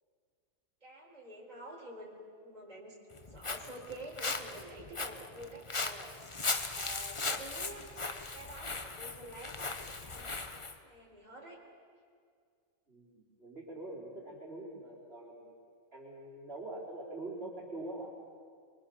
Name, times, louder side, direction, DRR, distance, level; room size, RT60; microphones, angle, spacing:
voice 1, 0.8-3.0 3.3-11.6, right 1 dB, 30° right, -3 dB, 4.3 m, -49 dB
Walk footsteps, 3.1-10.8, left 3 dB, 25° left, 0.9 m, -38 dB
voice 2, 12.9-15.5 15.9-18.2, right 2 dB, 45° right, -3 dB, 4.4 m, -44 dB
25.0 x 24.0 x 6.9 m, 2.2 s
omnidirectional pair, 1.4 m